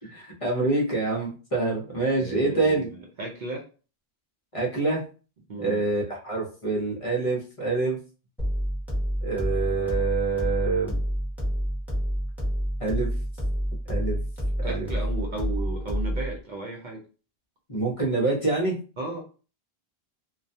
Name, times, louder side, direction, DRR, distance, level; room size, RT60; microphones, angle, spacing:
voice 1, 0.1-2.9 4.5-5.0 5.6-8.0 9.2-11.0 12.8-13.1 13.9-14.2 14.6-14.9 17.7-18.8, right 3 dB, 40° left, -3 dB, 0.6 m, -26 dB
voice 2, 2.2-3.6 5.5-5.8 14.6-17.0 19.0-19.2, right 2 dB, 55° right, 0 dB, 0.6 m, -35 dB
sound 1, 8.4-16.4, equal, ahead, 0.9 m, -28 dB
2.3 x 2.1 x 2.6 m, 0.36 s
omnidirectional pair, 1.1 m